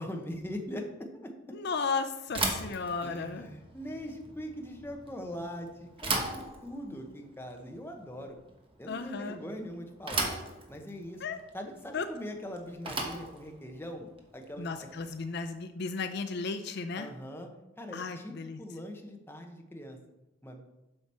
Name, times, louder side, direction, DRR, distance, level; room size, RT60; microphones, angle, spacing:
voice 1, 0.0-1.3 3.0-8.4 8.8-10.3 10.7-11.2 11.5-14.9 16.9-17.5 17.8-20.0 20.4-20.8, equal, 10° left, 3 dB, 0.9 m, -41 dB
voice 2, 1.5-3.5 8.9-9.4 11.2-11.4 11.9-12.1 14.6-17.1 17.9-18.6, left 4 dB, 60° left, 9 dB, 0.5 m, -34 dB
Bicycle / Thump thud, 2.3-15.4, right 3 dB, 30° right, 1.1 m, -38 dB
7.8 x 5.8 x 4.3 m, 0.96 s
head